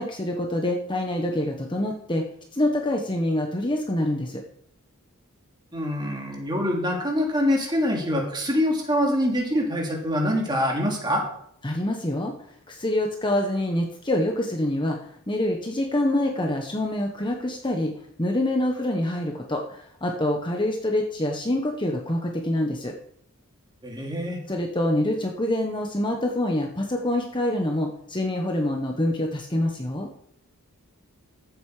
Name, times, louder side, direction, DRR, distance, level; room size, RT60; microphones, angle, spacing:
voice 1, 0.0-2.2 2.5-4.4 11.6-12.3 12.7-17.9 18.2-22.9 24.5-30.1, left 1 dB, 20° left, 2 dB, 1.2 m, -26 dB
voice 2, 5.7-11.2 23.8-24.4, equal, 20° right, 0 dB, 3.0 m, -25 dB
14.5 x 8.1 x 5.0 m, 0.68 s
head